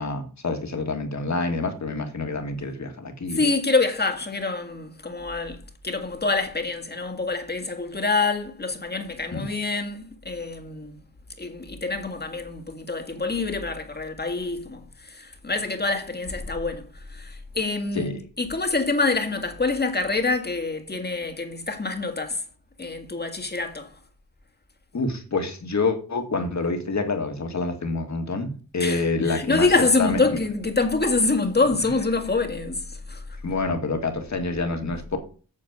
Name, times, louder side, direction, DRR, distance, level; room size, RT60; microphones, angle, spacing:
voice 1, 0.0-3.4 9.3-9.5 18.0-18.2 24.9-29.7 30.0-30.4 33.4-35.2, left 3 dB, 50° left, 2.2 m, -27 dB
voice 2, 3.3-10.9 11.4-14.8 15.1-22.4 22.8-23.9 28.8-33.2, left 3 dB, 25° left, 1.9 m, -26 dB
8.8 x 6.7 x 5.3 m
wide cardioid pair, 85°, 36 cm